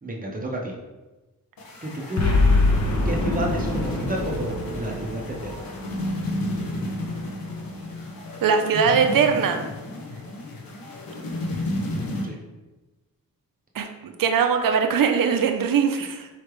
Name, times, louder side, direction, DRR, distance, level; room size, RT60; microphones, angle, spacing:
voice 1, 0.0-0.7 1.8-2.6 3.0-5.7 12.2-12.4, right 1 dB, 25° right, -1 dB, 0.9 m, -31 dB
sound 1, 1.6-12.2, left 1 dB, 80° left, 0.9 m, -32 dB
Boom, 2.2-6.6, left 3 dB, 50° left, 0.9 m, -24 dB
voice 2, 8.4-9.7 13.7-16.3, right 6 dB, 70° right, 6 dB, 0.6 m, -21 dB
4.8 x 3.3 x 3.1 m, 1.1 s
wide cardioid pair, 95°, 35 cm